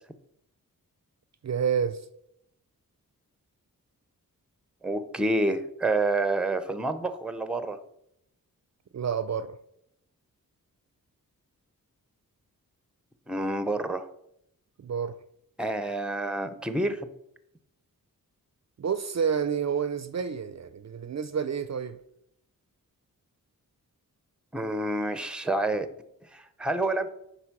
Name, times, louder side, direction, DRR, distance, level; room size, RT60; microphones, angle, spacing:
voice 1, 1.4-2.0 8.9-9.6 14.8-15.2 18.8-22.0, right 7 dB, 50° right, 0.5 m, -29 dB
voice 2, 4.8-7.8 13.3-14.1 15.6-17.1 24.5-25.9 26.3-27.1, right 2 dB, 5° right, 0.7 m, -28 dB
9.9 x 4.4 x 5.9 m
wide cardioid pair, 125°, 35 cm